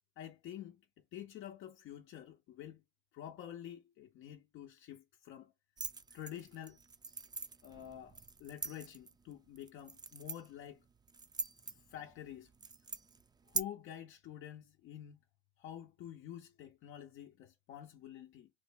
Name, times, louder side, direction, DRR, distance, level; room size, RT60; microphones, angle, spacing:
voice 1, 0.2-0.8 1.1-2.8 3.1-5.5 6.1-6.8 7.6-10.8 11.9-12.5 13.5-15.2 15.6-18.5, left 11 dB, 85° left, 0.5 m, -48 dB
sound 1, 5.8-13.6, right 3 dB, 20° right, 0.3 m, -44 dB
3.2 x 2.1 x 3.2 m
cardioid pair, 90°, 20 cm